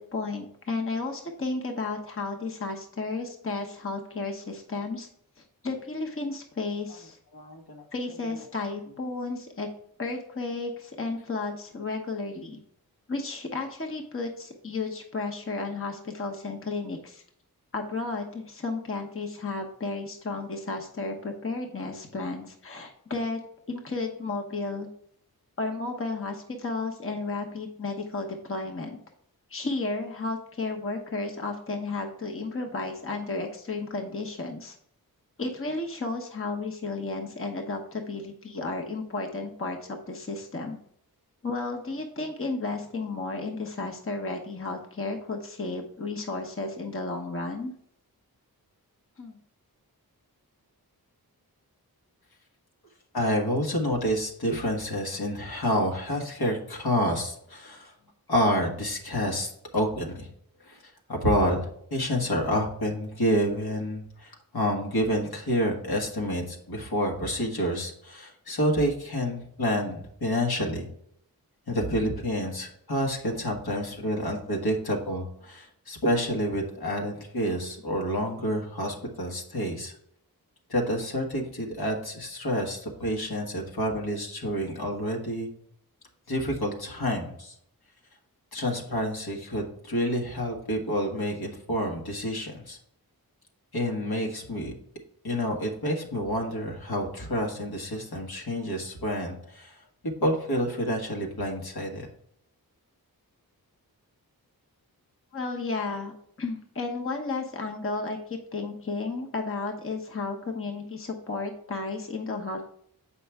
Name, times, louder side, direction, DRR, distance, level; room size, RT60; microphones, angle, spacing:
voice 1, 0.0-5.1 5.4-7.2 7.9-9.7 10.0-12.6 13.1-17.2 17.7-23.4 23.7-24.9 25.6-29.0 29.5-34.8 35.4-40.8 41.4-47.7 49.2-49.4 105.3-106.1 106.4-112.7, left 3 dB, 35° left, 2 dB, 1.0 m, -33 dB
voice 2, 7.3-7.8 8.3-8.4 53.1-57.9 58.3-60.3 60.6-70.9 71.7-79.9 80.7-85.5 86.3-87.5 88.5-92.8 93.7-94.7 95.2-99.8 100.2-102.1, equal, 75° left, 0 dB, 1.7 m, -28 dB
7.6 x 5.4 x 3.5 m, 0.68 s
wide cardioid pair, 85°, 37 cm